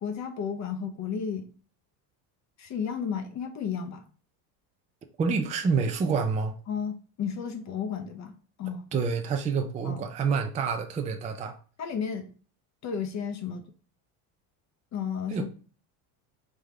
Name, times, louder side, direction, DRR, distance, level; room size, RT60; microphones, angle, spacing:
voice 1, 0.0-1.5 2.6-4.0 6.7-8.9 9.8-10.1 11.8-12.3 12.8-13.7 14.9-15.5, left 7 dB, 40° left, 0.7 m, -33 dB
voice 2, 5.2-6.5 8.9-11.6 15.3-15.5, right 5 dB, 15° right, 0.4 m, -27 dB
3.6 x 3.5 x 3.1 m
supercardioid pair, 115°, 45 cm